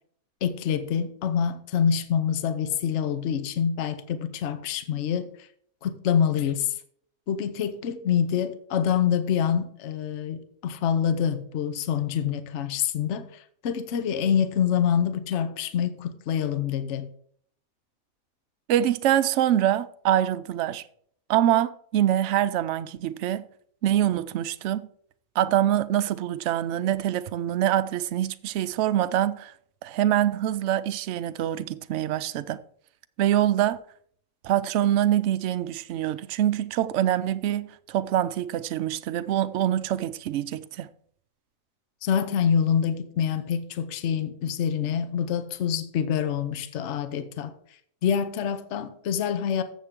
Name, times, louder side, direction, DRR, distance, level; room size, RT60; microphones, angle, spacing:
voice 1, 0.4-5.3 5.8-6.7 7.3-17.1 42.0-47.5 48.0-49.6, left 8 dB, 60° left, 1.0 m, -26 dB
voice 2, 18.7-20.8 21.3-23.5 23.8-24.9 25.4-29.5 29.8-32.6 33.2-33.8 34.4-40.9, right 11 dB, 65° right, 0.8 m, -25 dB
13.5 x 7.4 x 3.6 m
omnidirectional pair, 1.5 m